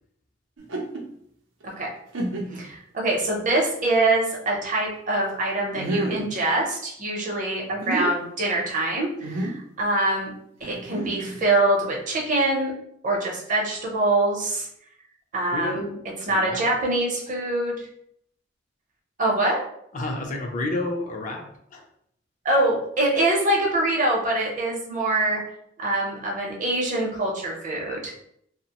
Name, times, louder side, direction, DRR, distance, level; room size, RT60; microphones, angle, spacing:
sound 1, 0.6-1.0 1.6-1.7 2.1-2.7 3.4-3.5 5.7-6.3 7.6-8.1 9.2-9.6 10.6-11.4, right 2 dB, 85° right, 0.6 m, -29 dB
voice 1, 2.5-10.3 10.6-12.7 13.0-14.7 15.3-15.8 16.3-17.9 19.2-19.6 22.4-25.4 25.8-28.1, right 2 dB, 40° right, -1 dB, 0.7 m, -24 dB
voice 2, 15.5-16.0 16.3-16.6 19.9-21.4 21.7-21.8, left 2 dB, 40° left, 2 dB, 0.4 m, -30 dB
2.9 x 2.1 x 2.8 m, 0.71 s
head